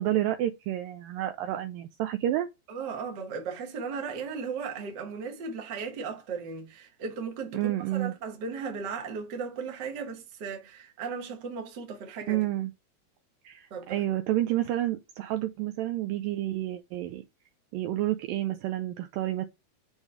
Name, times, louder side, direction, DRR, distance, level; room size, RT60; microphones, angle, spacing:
voice 1, 0.0-2.5 7.5-8.1 12.3-12.7 13.4-17.2 17.7-19.5, right 14 dB, 80° right, 2.0 m, -29 dB
voice 2, 2.7-12.4 13.7-14.0, right 5 dB, 55° right, 1.1 m, -36 dB
7.3 x 3.5 x 4.4 m
omnidirectional pair, 4.5 m